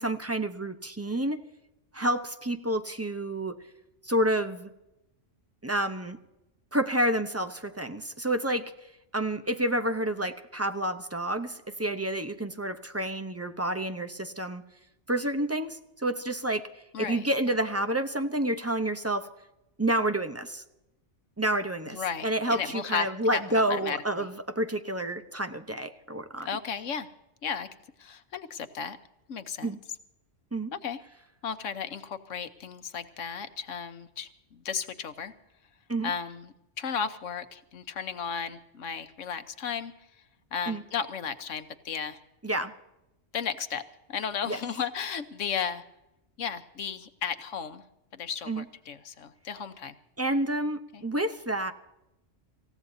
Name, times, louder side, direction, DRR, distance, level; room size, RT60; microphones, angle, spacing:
voice 1, 0.0-1.4 1.9-3.6 4.0-4.7 5.6-6.2 6.7-8.7 9.1-14.6 15.1-16.7 17.0-19.3 19.8-20.6 21.4-26.5 29.6-29.8 30.5-30.7 35.9-36.1 40.7-40.8 42.4-42.7 44.5-44.6 48.5-48.6 50.2-51.7, right 1 dB, 15° right, 8 dB, 0.6 m, -29 dB
voice 2, 16.9-17.3 21.9-23.1 23.3-24.3 26.4-27.1 27.4-27.7 28.0-29.0 29.3-29.7 30.7-31.0 31.4-35.3 36.0-39.9 40.5-42.2 43.3-43.8 44.1-45.8 46.4-47.8 48.1-50.0 50.9-51.0, left 7 dB, 90° left, 10 dB, 1.3 m, -34 dB
27.0 x 15.5 x 2.7 m, 0.91 s
omnidirectional pair, 1.3 m